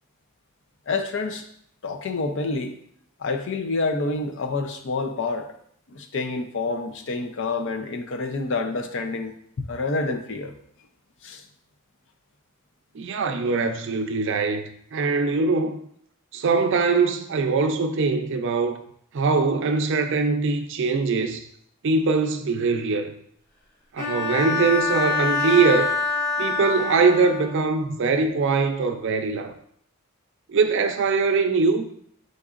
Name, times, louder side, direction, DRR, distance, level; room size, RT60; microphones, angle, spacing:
voice 1, 0.9-1.5 1.8-2.8 3.2-5.5 5.9-10.5 11.2-11.4, left 3 dB, 55° left, 0.5 m, -28 dB
voice 2, 12.9-15.8 16.3-18.8 19.1-21.4 21.8-23.2 23.9-25.9 26.4-29.5 30.5-31.8, right 4 dB, 55° right, 0.4 m, -22 dB
Bowed string instrument, 24.0-27.7, left 4 dB, 40° left, 1.4 m, -25 dB
5.2 x 3.8 x 2.4 m
head